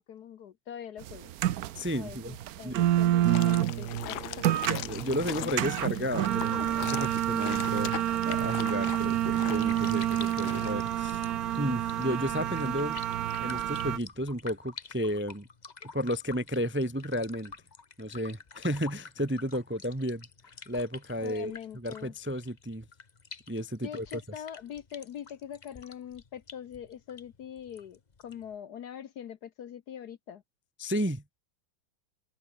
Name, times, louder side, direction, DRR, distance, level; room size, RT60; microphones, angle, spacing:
voice 1, 0.0-1.3 1.9-4.5 5.4-5.6 21.2-22.1 23.8-30.4, left 9 dB, 60° left, 1.3 m, -43 dB
sound 1, 1.0-14.0, right 12 dB, 65° right, 1.0 m, -29 dB
voice 2, 1.7-2.4 2.6-2.9 4.7-7.9 8.2-11.2 11.6-13.0 13.4-15.5 15.9-17.5 18.0-20.3 20.7-22.8 23.5-24.1 30.8-31.2, equal, 10° right, 0.7 m, -33 dB
sound 2, 3.2-10.7, left 15 dB, 80° left, 1.4 m, -41 dB
sound 3, 9.5-28.5, left 5 dB, 30° left, 0.9 m, -49 dB
omnidirectional pair, 2.2 m